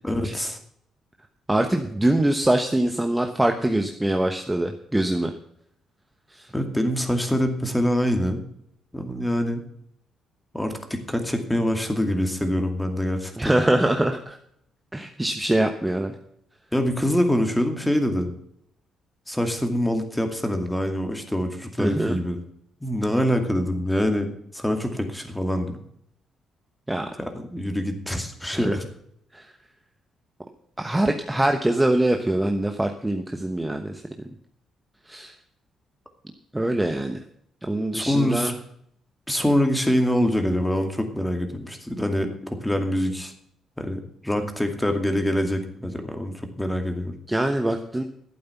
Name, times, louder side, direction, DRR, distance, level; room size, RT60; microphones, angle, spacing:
voice 1, 0.0-0.6 6.5-8.4 8.9-9.6 10.5-13.5 16.7-18.3 19.3-22.4 22.8-25.8 27.2-28.9 37.9-38.5 39.3-43.3 43.8-47.1, equal, 5° left, 5 dB, 2.4 m, -25 dB
voice 2, 1.5-5.3 6.3-6.5 13.4-14.4 14.9-16.1 21.8-22.2 26.9-27.1 28.5-28.7 29.3-29.5 30.8-34.0 35.1-35.3 36.5-37.2 37.6-38.5 47.3-48.0, right 1 dB, 10° right, 4 dB, 1.1 m, -23 dB
12.0 x 8.6 x 5.8 m, 0.70 s
cardioid pair, 90°, 0 cm